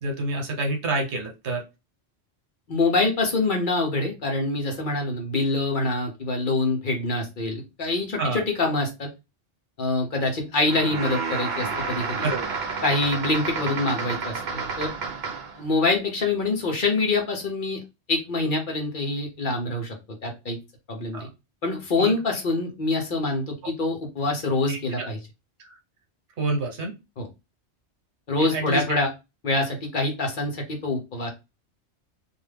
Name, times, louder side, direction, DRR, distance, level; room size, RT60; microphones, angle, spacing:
voice 1, 0.0-1.6 8.2-8.4 12.2-12.6 21.1-21.3 22.0-22.1 24.7-25.1 25.6-25.8 26.4-26.9 28.4-28.8, right 2 dB, 75° right, 2 dB, 1.2 m, -28 dB
voice 2, 2.7-9.1 9.8-12.3 12.8-14.9 15.5-17.8 18.1-19.9 20.2-20.6 20.9-21.3 21.6-25.2 27.2-27.3 28.3-29.1 29.4-31.3, left 2 dB, 50° left, 2 dB, 0.9 m, -25 dB
sound 1, 10.6-15.6, right 4 dB, 50° right, 0.6 m, -30 dB
2.6 x 2.3 x 3.3 m, 0.25 s
omnidirectional pair, 1.2 m